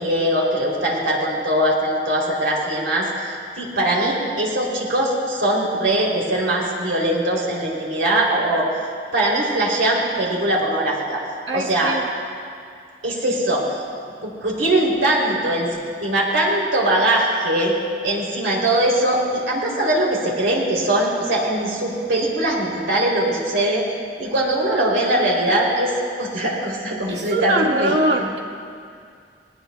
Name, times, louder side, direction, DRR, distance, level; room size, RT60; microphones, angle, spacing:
voice 1, 0.0-8.7 9.1-11.2 11.5-11.9 13.0-13.6 14.2-15.7 16.0-17.7 18.0-23.8 24.2-25.9 26.2-27.9, right 1 dB, 80° right, -3 dB, 3.1 m, -21 dB
voice 2, 11.5-12.1 27.1-28.4, right 1 dB, 65° right, -2 dB, 1.5 m, -22 dB
19.5 x 18.5 x 2.3 m, 2.3 s
head